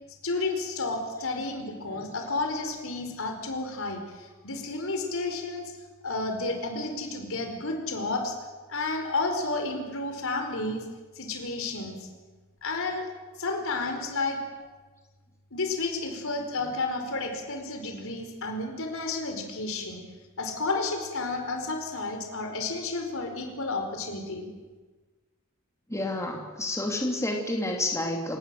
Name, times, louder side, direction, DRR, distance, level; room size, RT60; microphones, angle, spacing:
voice 1, 0.2-5.6 6.0-8.4 8.7-10.8 11.1-12.0 12.6-13.0 13.4-14.4 15.5-20.0 20.4-24.5, left 3 dB, 65° left, 4 dB, 4.7 m, -31 dB
voice 2, 25.9-28.4, left 1 dB, 15° left, 1 dB, 2.9 m, -30 dB
27.5 x 18.0 x 7.7 m, 1.3 s
head